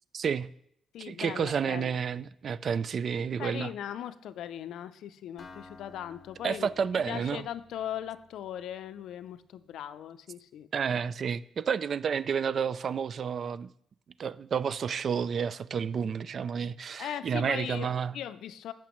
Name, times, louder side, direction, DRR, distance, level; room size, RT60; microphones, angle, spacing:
voice 1, 0.1-0.5 1.0-3.7 6.4-7.4 10.7-13.7 14.2-18.1, right 7 dB, 50° right, 0.3 m, -30 dB
voice 2, 0.9-2.0 3.4-10.7 17.0-17.9 18.1-18.7, left 10 dB, 80° left, 0.5 m, -39 dB
Acoustic guitar, 5.4-9.2, left 4 dB, 40° left, 1.4 m, -54 dB
14.5 x 5.9 x 3.1 m
cardioid pair, 105°, 0 cm